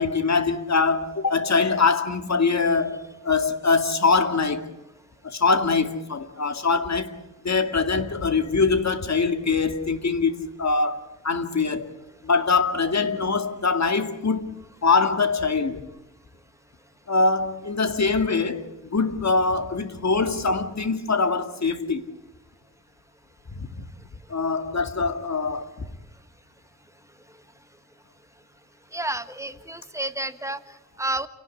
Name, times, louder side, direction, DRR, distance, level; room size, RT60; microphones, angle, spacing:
voice 1, 0.0-4.7 5.2-7.2 7.4-11.9 12.2-15.8 17.1-22.1 23.5-23.7 24.3-25.9, left 4 dB, 50° left, 2.3 m, -23 dB
voice 2, 28.9-31.3, right 1 dB, 10° right, 1.4 m, -31 dB
29.0 x 18.0 x 9.7 m
wide cardioid pair, 100°, 35 cm